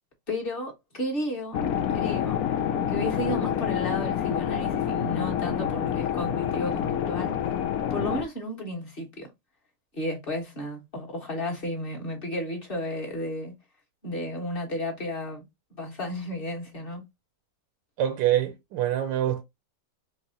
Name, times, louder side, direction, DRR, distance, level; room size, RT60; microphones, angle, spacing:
voice 1, 0.3-2.4 2.9-7.4 7.9-9.3 9.9-13.5 14.0-15.4 15.8-17.0, left 1 dB, 30° left, 1.5 m, -33 dB
sound 1, 1.5-8.2, left 9 dB, 70° left, 0.9 m, -27 dB
voice 2, 18.0-19.4, right 12 dB, 80° right, 1.3 m, -25 dB
4.6 x 2.8 x 2.7 m
omnidirectional pair, 2.0 m